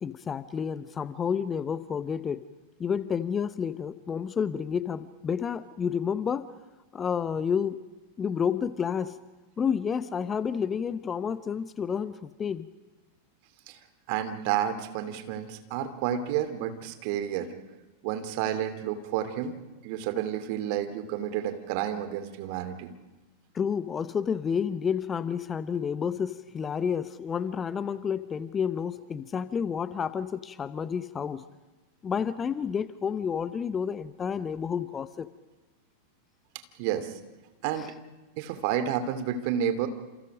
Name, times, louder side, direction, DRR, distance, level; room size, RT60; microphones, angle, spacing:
voice 1, 0.0-2.5 2.8-6.5 6.9-7.8 8.2-9.2 9.6-12.7 23.5-31.5 32.0-35.3 37.8-37.9, left 7 dB, 20° left, 16 dB, 0.8 m, -30 dB
voice 2, 14.1-17.5 18.0-19.6 19.8-22.9 36.8-37.1 37.6-37.9 38.4-39.9, right 10 dB, 45° right, 10 dB, 2.4 m, -30 dB
29.5 x 28.0 x 5.2 m, 1.2 s
figure-of-eight pair, 90°, 0 cm